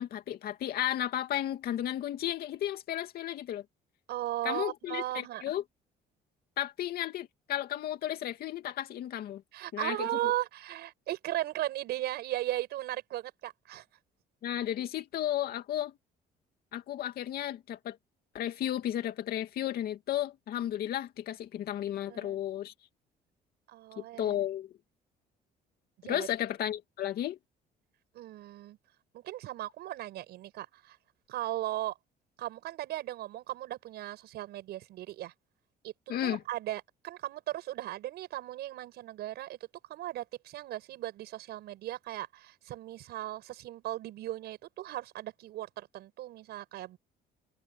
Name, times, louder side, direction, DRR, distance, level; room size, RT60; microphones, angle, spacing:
voice 1, 0.0-3.6 4.4-5.6 6.6-9.4 9.7-10.3 14.4-15.9 16.7-18.0 18.3-22.7 24.0-24.7 26.0-27.4 36.1-36.4, left 11 dB, 65° left, 2.6 m, -33 dB
voice 2, 4.1-5.4 9.5-13.8 22.1-22.4 23.7-24.4 26.0-26.3 28.1-28.8 29.1-31.0 31.3-31.9 32.4-35.3 35.8-35.9 36.2-39.6 39.9-47.0, right 14 dB, 75° right, 7.1 m, -37 dB
cardioid pair, 110°, 17 cm